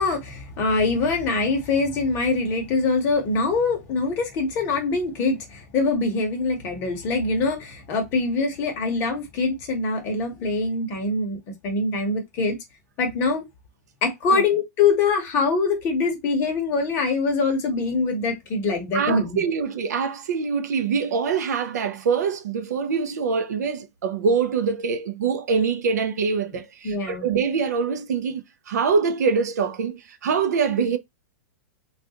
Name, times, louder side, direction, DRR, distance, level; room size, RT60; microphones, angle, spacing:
voice 1, 0.0-11.4 11.6-12.6 13.0-13.4 14.0-19.4 26.8-27.3, left 3 dB, 20° left, 0.9 m, -24 dB
voice 2, 18.9-31.0, right 5 dB, 70° right, 0.6 m, -24 dB
3.5 x 2.4 x 2.7 m
supercardioid pair, 175°, 9 cm